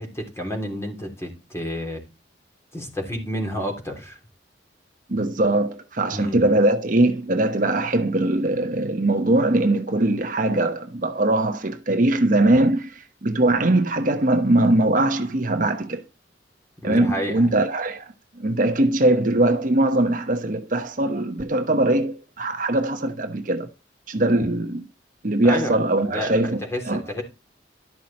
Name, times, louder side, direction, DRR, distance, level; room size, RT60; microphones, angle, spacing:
voice 1, 0.0-2.0 2.7-4.2 6.1-6.4 16.8-17.5 25.4-25.7 26.0-27.2, equal, 15° left, 3.5 m, -30 dB
voice 2, 5.1-16.0 16.8-23.7 24.1-24.8 25.2-26.6 26.8-27.0, right 2 dB, 45° right, 1.1 m, -21 dB
12.0 x 6.1 x 4.3 m
head